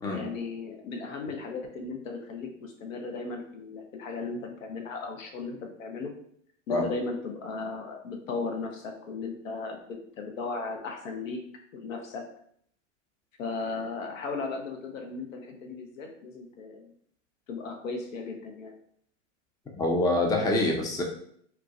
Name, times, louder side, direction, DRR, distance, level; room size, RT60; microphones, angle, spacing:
voice 1, 0.1-6.1 6.7-11.4 11.7-12.2 13.4-16.9 17.5-18.7, left 4 dB, 80° left, 3 dB, 0.8 m, -36 dB
voice 2, 19.8-21.0, left 2 dB, 10° left, 1 dB, 0.4 m, -25 dB
4.5 x 2.1 x 2.4 m, 0.66 s
hypercardioid pair, 100°, 39 cm